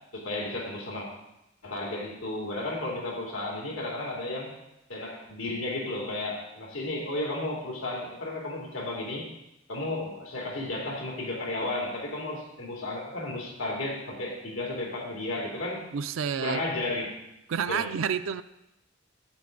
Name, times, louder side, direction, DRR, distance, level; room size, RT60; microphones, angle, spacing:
voice 1, 0.1-1.1 1.6-4.5 4.9-9.3 9.7-15.9 16.4-17.1 17.7-17.8, left 2 dB, 90° left, -2 dB, 2.7 m, -33 dB
voice 2, 15.9-16.6 17.5-18.4, right 7 dB, 80° right, 10 dB, 0.4 m, -29 dB
12.0 x 9.5 x 3.8 m, 0.89 s
head